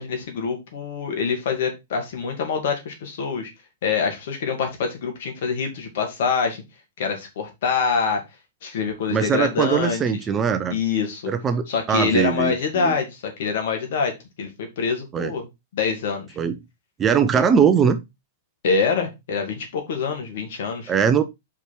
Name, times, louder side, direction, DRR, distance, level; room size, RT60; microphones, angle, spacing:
voice 1, 0.0-3.5 3.8-6.6 7.0-8.2 8.6-10.0 10.7-11.3 11.7-15.5 15.7-16.4 18.6-20.9, left 5 dB, 65° left, 2.4 m, -25 dB
voice 2, 9.1-10.7 11.3-12.9 15.1-15.3 16.4-16.6 17.0-18.0 20.9-21.2, right 7 dB, 25° right, 0.9 m, -21 dB
4.9 x 4.9 x 4.5 m
hypercardioid pair, 115°, 0 cm